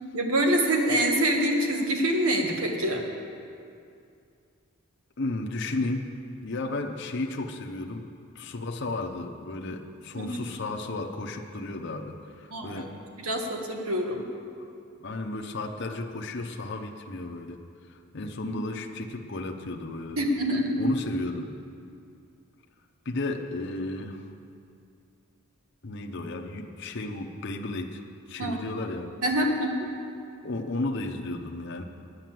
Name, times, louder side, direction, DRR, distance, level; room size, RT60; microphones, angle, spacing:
voice 1, 0.1-3.0 10.2-10.5 12.5-12.8 13.2-14.2 20.2-20.9 28.4-28.6 29.2-29.7, right 1 dB, 80° right, 2 dB, 1.5 m, -25 dB
voice 2, 5.2-6.1 6.4-8.1 8.3-12.9 15.0-17.6 17.9-20.2 20.8-21.5 23.0-24.3 25.8-28.0 28.3-29.2 30.4-31.8, left 2 dB, 55° left, 2 dB, 0.7 m, -33 dB
9.6 x 9.3 x 7.5 m, 2.4 s
head